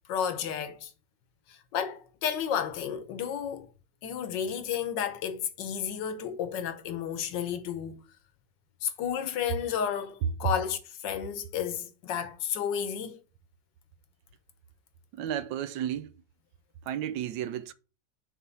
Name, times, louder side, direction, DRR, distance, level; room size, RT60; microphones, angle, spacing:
voice 1, 0.1-0.9 1.5-3.7 4.0-8.0 8.8-13.2, left 8 dB, 80° left, 1.5 m, -32 dB
voice 2, 15.1-16.1 16.9-17.7, right 11 dB, 85° right, 1.3 m, -33 dB
6.5 x 3.4 x 5.7 m
omnidirectional pair, 1.9 m